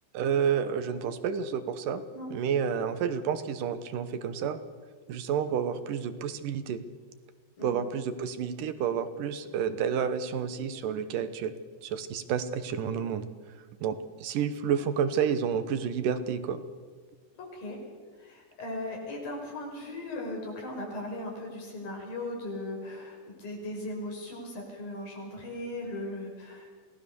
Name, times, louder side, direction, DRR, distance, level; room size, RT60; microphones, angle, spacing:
voice 1, 0.1-2.0 2.3-4.6 5.1-6.8 7.6-11.6 11.8-13.3 13.8-16.6, right 7 dB, 75° right, 11 dB, 2.6 m, -30 dB
voice 2, 17.3-17.8 18.2-26.7, left 1 dB, 85° left, 0 dB, 7.4 m, -38 dB
27.5 x 18.5 x 7.0 m, 1.5 s
omnidirectional pair, 4.0 m